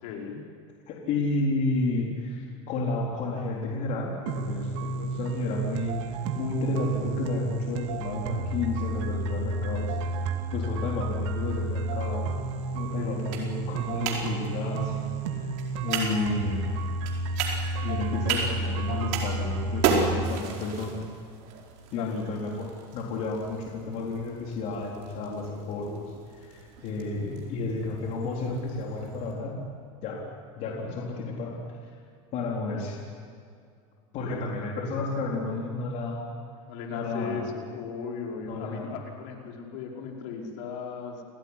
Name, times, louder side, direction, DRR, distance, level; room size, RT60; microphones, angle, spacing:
voice 1, 0.0-0.4 13.0-13.2 21.9-22.2 34.3-34.4 36.7-41.2, left 6 dB, 65° left, 0 dB, 5.1 m, -37 dB
voice 2, 0.9-10.0 10.5-12.3 12.7-15.5 15.8-16.7 17.8-21.0 21.9-29.7 30.0-30.3 30.6-31.8 32.3-33.0 34.1-36.3 36.9-37.4 38.5-38.9, left 3 dB, 45° left, -2 dB, 4.0 m, -31 dB
sound 1, 4.3-20.3, right 2 dB, 70° right, 2.4 m, -31 dB
sound 2, 11.4-29.3, right 5 dB, 55° right, 5.0 m, -36 dB
29.0 x 18.0 x 9.9 m, 2.3 s
supercardioid pair, 155°, 17 cm